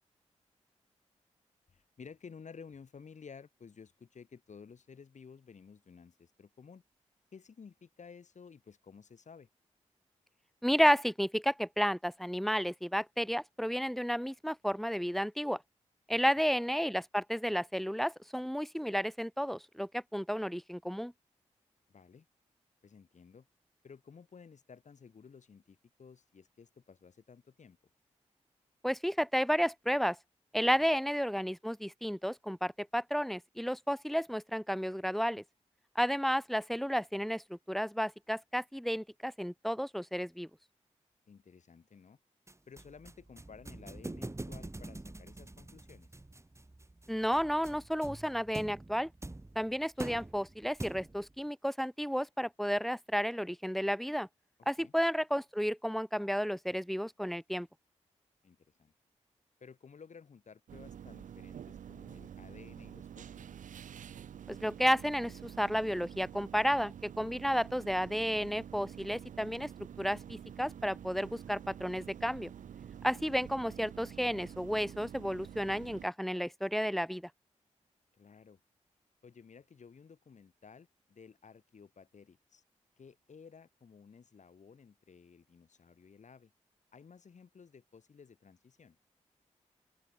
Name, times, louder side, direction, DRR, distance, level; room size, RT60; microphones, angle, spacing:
voice 1, 1.7-6.8 7.3-9.5 16.1-16.2 21.9-22.3 22.8-23.5 23.8-27.8 41.3-42.2 42.7-46.1 54.8-54.9 58.4-58.9 59.6-63.6 78.2-78.6 79.2-82.6 83.0-86.5 86.9-89.0, left 6 dB, 70° left, 5.2 m, -54 dB
voice 2, 10.6-15.6 16.1-21.1 28.8-30.2 30.5-35.4 35.9-40.5 47.1-49.1 49.5-54.3 54.7-57.7 64.5-69.7 70.0-72.5 73.0-77.3, equal, ahead, 1.4 m, -32 dB
sound 1, 42.5-51.3, right 2 dB, 20° right, 2.0 m, -45 dB
sound 2, 60.7-76.1, right 9 dB, 85° right, 1.0 m, -48 dB
open air
cardioid pair, 50°, 13 cm